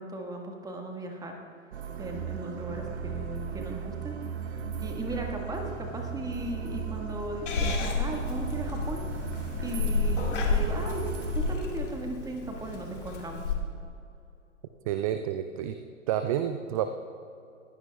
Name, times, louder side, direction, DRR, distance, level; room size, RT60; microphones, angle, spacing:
voice 1, 0.0-1.4 2.0-4.1 4.5-9.0 9.6-13.5, right 1 dB, 10° right, 2 dB, 1.5 m, -37 dB
sound 1, 1.7-11.6, right 6 dB, 55° right, 1.3 m, -36 dB
Purr / Meow, 7.5-13.5, left 4 dB, 65° left, 2.4 m, -31 dB
voice 2, 14.9-15.8 16.1-16.9, right 10 dB, 30° right, 9 dB, 0.4 m, -29 dB
20.5 x 15.5 x 2.3 m, 2.6 s
figure-of-eight pair, 105°, 39 cm